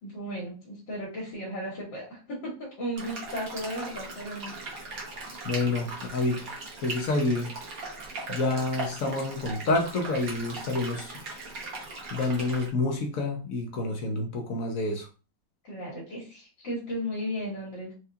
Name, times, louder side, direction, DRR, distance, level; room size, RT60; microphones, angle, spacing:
voice 1, 0.0-4.5 15.6-17.9, equal, 75° left, 1.9 m, -35 dB
sound 1, 3.0-12.7, right 3 dB, 55° right, 1.4 m, -39 dB
voice 2, 5.4-7.5 8.3-11.1 12.1-15.1, left 2 dB, 60° left, 0.9 m, -28 dB
4.5 x 2.4 x 2.7 m
omnidirectional pair, 2.0 m